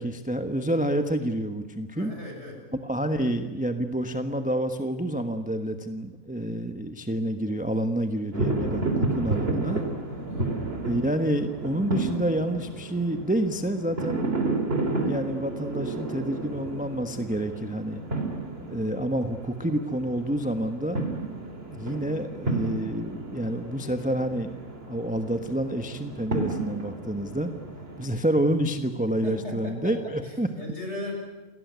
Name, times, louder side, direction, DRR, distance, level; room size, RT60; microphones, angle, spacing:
voice 1, 0.0-2.1 2.8-9.8 10.8-14.3 15.0-18.0 18.7-21.0 21.7-24.5 24.9-27.5 28.0-30.5, right 1 dB, 5° right, 7 dB, 1.1 m, -28 dB
voice 2, 1.9-2.6 8.6-9.0 9.6-9.9 10.3-10.5 29.2-31.1, left 2 dB, 45° left, 1 dB, 7.1 m, -38 dB
sound 1, 8.3-28.1, right 2 dB, 40° right, 3.3 m, -32 dB
28.5 x 18.5 x 9.5 m, 1.1 s
omnidirectional pair, 1.6 m